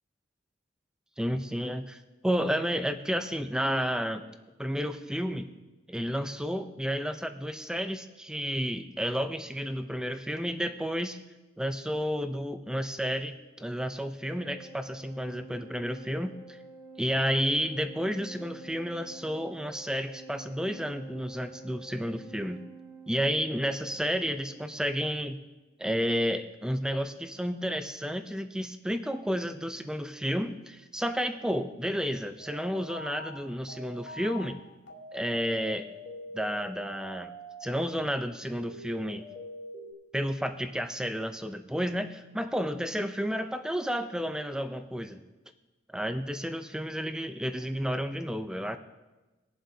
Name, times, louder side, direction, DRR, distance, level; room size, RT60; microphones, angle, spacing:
voice 1, 1.2-4.2 4.6-5.5 5.9-11.2 11.6-16.6 17.0-22.6 23.1-25.4 25.8-34.6 35.1-35.9 36.3-37.4 37.6-39.3 40.1-45.2 45.9-48.8, equal, 5° right, 9 dB, 0.5 m, -31 dB
Organ, 14.2-25.0, right 2 dB, 85° right, 1.6 m, -48 dB
sound 1, 32.4-38.0 38.5-39.9, left 1 dB, 70° left, 2.1 m, -45 dB
20.0 x 7.6 x 2.8 m, 1.1 s
head